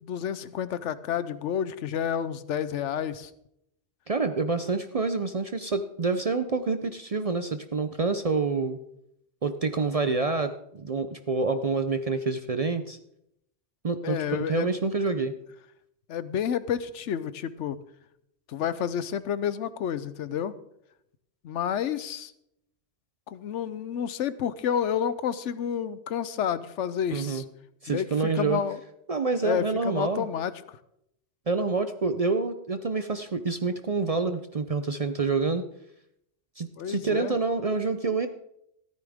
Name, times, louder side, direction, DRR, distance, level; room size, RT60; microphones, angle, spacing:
voice 1, 0.0-3.3 14.0-14.7 16.1-17.8 18.5-20.5 21.4-22.3 23.3-27.4 27.9-28.8 29.4-30.8 36.8-37.4, left 8 dB, 80° left, 15 dB, 1.0 m, -30 dB
voice 2, 4.1-8.8 9.4-13.0 13.8-15.3 27.1-27.4 27.8-28.6 29.1-30.3 31.5-35.6 36.6-38.3, right 4 dB, 45° right, 9 dB, 0.5 m, -27 dB
14.5 x 13.0 x 3.6 m, 0.77 s
omnidirectional pair, 1.2 m